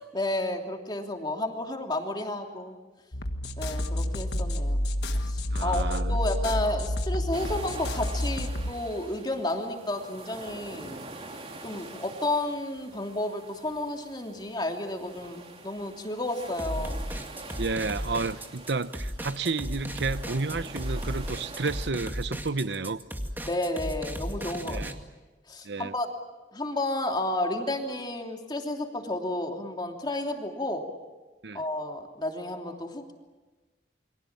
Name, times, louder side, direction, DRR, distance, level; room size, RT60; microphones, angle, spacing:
voice 1, 0.0-2.8 3.6-4.9 5.2-11.0 11.6-17.0 23.4-24.8 25.5-26.1 26.5-30.8 31.5-33.1, left 1 dB, 25° left, 3.0 m, -32 dB
sound 1, 3.1-8.7, left 1 dB, 65° left, 1.7 m, -29 dB
voice 2, 5.5-6.2 17.6-23.0 24.6-24.9 25.6-25.9 31.4-31.6, right 3 dB, 75° right, 0.9 m, -31 dB
sound 2, 7.3-21.9, right 2 dB, 35° right, 3.0 m, -45 dB
sound 3, 16.6-24.9, equal, 10° right, 2.1 m, -35 dB
29.0 x 24.0 x 7.4 m
head